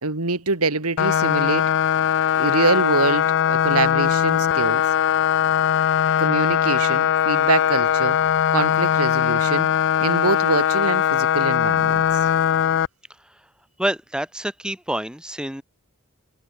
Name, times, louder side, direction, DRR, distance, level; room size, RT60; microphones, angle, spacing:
voice 1, 0.0-1.7 2.3-4.8 6.2-8.2 8.5-9.7 10.0-12.0, right 3 dB, 90° right, 2.5 m, -24 dB
sound 1, 1.0-12.9, left 9 dB, 60° left, 0.4 m, -20 dB
voice 2, 13.8-15.6, right 1 dB, 5° right, 1.9 m, -27 dB
head